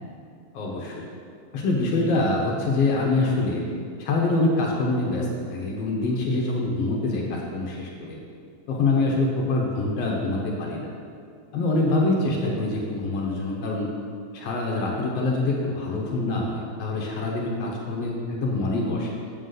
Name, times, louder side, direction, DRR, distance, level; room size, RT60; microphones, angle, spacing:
voice 1, 0.5-1.0 1.5-3.6 4.0-8.2 8.7-10.9 11.5-13.9 14.3-19.1, left 2 dB, 65° left, -2 dB, 1.9 m, -25 dB
8.0 x 7.2 x 3.9 m, 2.3 s
omnidirectional pair, 3.3 m